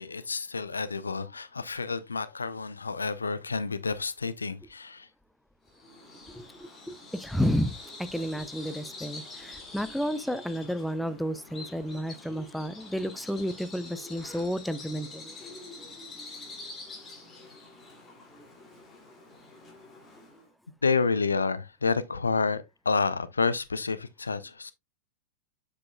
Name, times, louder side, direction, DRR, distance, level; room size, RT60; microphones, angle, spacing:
voice 1, 0.0-5.1 20.8-24.7, left 4 dB, 75° left, 0.6 m, -29 dB
Bird vocalization bird call bird song, 5.7-20.5, left 3 dB, 20° left, 2.5 m, -46 dB
voice 2, 6.3-15.4, equal, ahead, 0.6 m, -32 dB
7.5 x 6.2 x 2.3 m
figure-of-eight pair, 90°, 0 cm